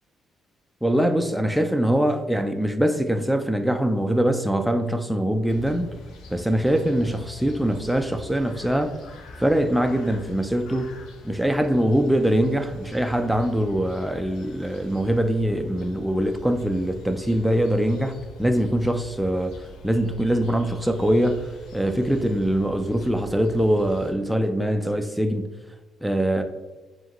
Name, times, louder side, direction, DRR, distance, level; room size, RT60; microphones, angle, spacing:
voice 1, 0.8-5.9 6.3-8.9 9.4-10.9 11.2-19.5 19.8-25.5 26.0-26.4, equal, ahead, 0.4 m, -23 dB
sound 1, 5.5-24.1, left 2 dB, 85° left, 0.7 m, -44 dB
4.8 x 3.0 x 2.9 m
cardioid pair, 90°, 0 cm